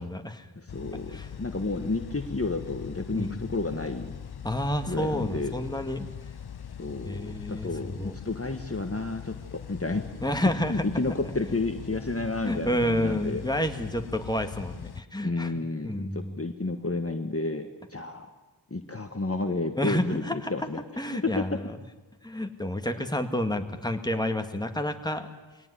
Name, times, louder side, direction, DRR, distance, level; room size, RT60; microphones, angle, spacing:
voice 1, 0.0-0.5 1.1-1.3 3.1-3.4 4.4-6.1 7.0-8.1 10.2-11.5 12.4-16.4 19.8-20.5 21.0-21.7 22.2-25.3, left 1 dB, 10° left, 6 dB, 1.9 m, -30 dB
voice 2, 0.6-4.1 4.9-5.5 6.8-10.1 10.7-13.4 15.2-18.3 18.7-20.8 21.1-21.6, left 3 dB, 30° left, 6 dB, 1.4 m, -31 dB
sound 1, 0.7-15.0, left 8 dB, 55° left, 0.7 m, -41 dB
23.0 x 18.0 x 9.8 m, 1.2 s
wide cardioid pair, 45°, 45 cm